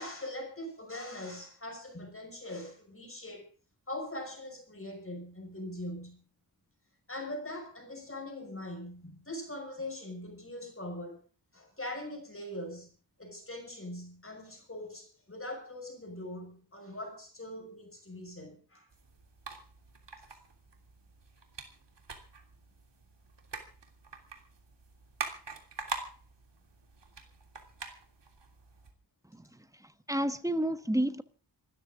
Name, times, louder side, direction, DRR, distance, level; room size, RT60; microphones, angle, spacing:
voice 1, 0.0-3.5 3.9-6.2 7.1-11.2 11.5-12.9 13.2-18.9, left 1 dB, 30° left, 5.8 m, -42 dB
sound 1, 18.9-28.9, right 4 dB, 70° right, 3.2 m, -45 dB
voice 2, 29.3-31.2, right 1 dB, 5° right, 1.3 m, -31 dB
26.5 x 13.5 x 3.7 m
wide cardioid pair, 80°, 44 cm